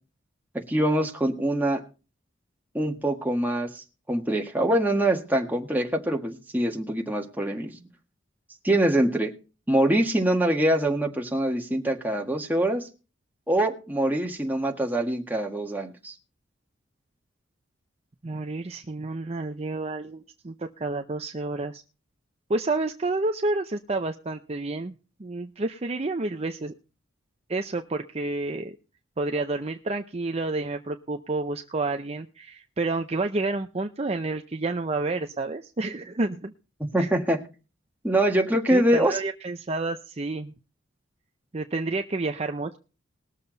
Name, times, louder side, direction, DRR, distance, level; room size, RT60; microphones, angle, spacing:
voice 1, 0.5-1.8 2.7-7.8 8.6-9.3 9.7-12.9 13.5-16.1 36.8-37.4 38.0-39.2, right 1 dB, 10° right, 2 dB, 1.7 m, -24 dB
voice 2, 18.2-21.8 22.5-24.9 25.2-26.7 27.5-28.8 29.2-36.5 37.0-37.1 38.7-40.5 41.5-42.8, right 2 dB, 30° right, 5 dB, 0.6 m, -29 dB
20.5 x 7.1 x 4.0 m, 0.33 s
head